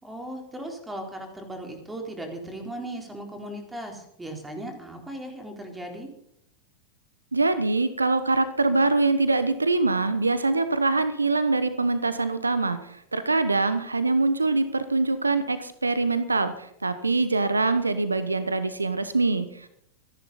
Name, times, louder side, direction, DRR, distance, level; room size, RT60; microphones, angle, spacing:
voice 1, 0.0-6.1, right 1 dB, 10° right, 3 dB, 4.0 m, -37 dB
voice 2, 7.3-19.7, right 3 dB, 80° right, 13 dB, 0.9 m, -24 dB
26.0 x 11.0 x 4.2 m, 0.73 s
figure-of-eight pair, 90°, 0 cm